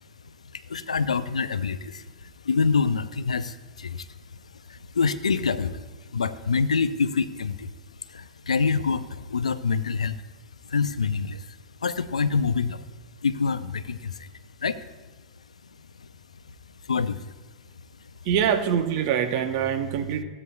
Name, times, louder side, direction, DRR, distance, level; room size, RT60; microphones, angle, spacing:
voice 1, 0.5-4.1 4.5-7.7 8.1-10.2 10.6-12.8 13.2-14.3 14.6-14.9 16.0-16.1 16.9-17.3, left 5 dB, 80° left, 14 dB, 0.4 m, -26 dB
voice 2, 18.2-20.2, right 8 dB, 50° right, 7 dB, 0.9 m, -24 dB
15.0 x 8.4 x 2.3 m, 1.3 s
figure-of-eight pair, 95°, 3 cm